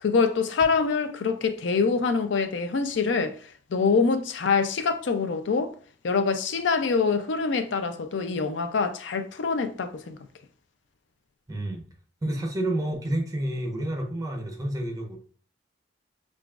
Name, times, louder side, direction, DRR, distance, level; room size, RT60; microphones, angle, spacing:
voice 1, 0.0-3.4 3.7-5.7 6.0-10.2, left 5 dB, 90° left, 0.5 m, -25 dB
voice 2, 11.5-11.9 12.2-15.2, right 1 dB, 20° right, 0.8 m, -29 dB
5.8 x 2.4 x 2.4 m
head